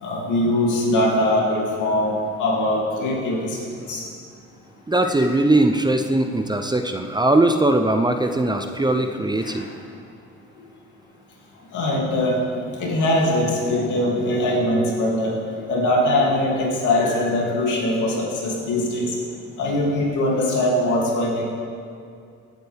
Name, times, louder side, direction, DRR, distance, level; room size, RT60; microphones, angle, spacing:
voice 1, 0.0-3.6 3.9-4.0 8.6-8.7 9.4-9.6 11.7-12.4 12.8-15.3 15.7-19.1 19.6-21.4, left 1 dB, 80° left, -3 dB, 2.7 m, -21 dB
voice 2, 4.9-9.7, right 2 dB, 15° right, 6 dB, 0.6 m, -20 dB
16.5 x 9.1 x 3.5 m, 2.3 s
cardioid pair, 90°, 30 cm